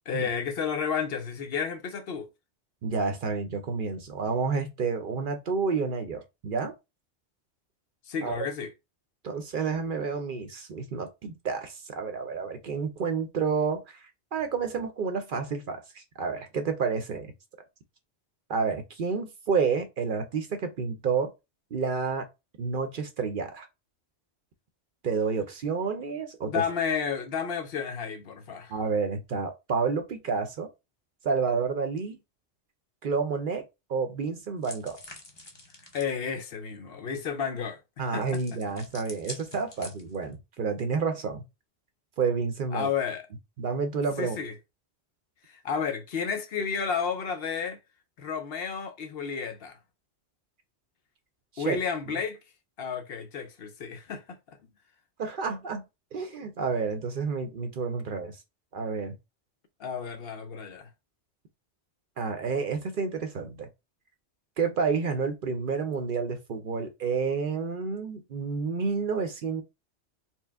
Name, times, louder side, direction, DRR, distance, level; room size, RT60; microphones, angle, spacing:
voice 1, 0.1-2.3 8.1-8.7 26.5-28.7 35.9-38.2 42.7-43.3 44.2-44.5 45.5-47.8 48.2-49.8 51.6-52.4 52.8-54.4 59.8-60.9, left 6 dB, 65° left, 0.8 m, -31 dB
voice 2, 2.8-6.7 8.2-8.4 9.2-17.3 18.5-21.3 21.7-22.3 22.6-23.7 25.0-26.6 28.7-30.7 31.2-32.2 33.0-33.6 33.9-35.0 38.0-41.4 42.2-42.9 43.6-44.4 51.5-51.8 55.2-55.8 56.1-58.4 58.7-59.1 62.2-63.7 64.6-69.6, right 5 dB, 60° right, 0.7 m, -30 dB
sound 1, 34.6-36.2 38.2-40.3, left 1 dB, 25° left, 0.8 m, -46 dB
4.4 x 2.0 x 3.4 m
omnidirectional pair, 1.2 m